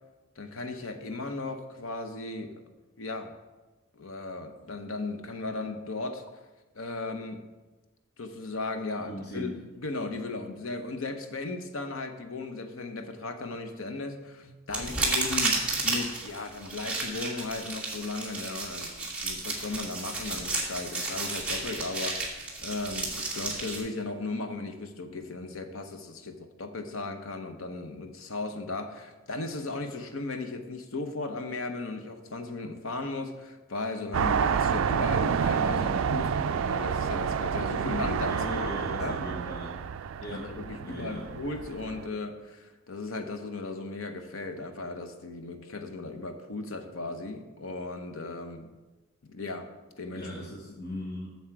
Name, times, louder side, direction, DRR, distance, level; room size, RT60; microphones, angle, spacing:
voice 1, 0.4-2.6 3.0-3.3 3.9-6.2 6.7-7.4 8.2-38.7 39.0-39.2 40.3-48.7 49.2-49.7 50.0-50.3, left 3 dB, 75° left, 6 dB, 0.8 m, -36 dB
voice 2, 9.0-9.5 14.4-14.5 38.3-39.8 40.2-40.5 40.8-41.3 50.1-51.3, equal, 45° left, -2 dB, 1.1 m, -38 dB
sound 1, 14.7-23.8, right 2 dB, 5° right, 1.5 m, -32 dB
sound 2, 34.1-42.1, right 7 dB, 70° right, 0.3 m, -29 dB
7.5 x 7.2 x 4.6 m, 1.2 s
head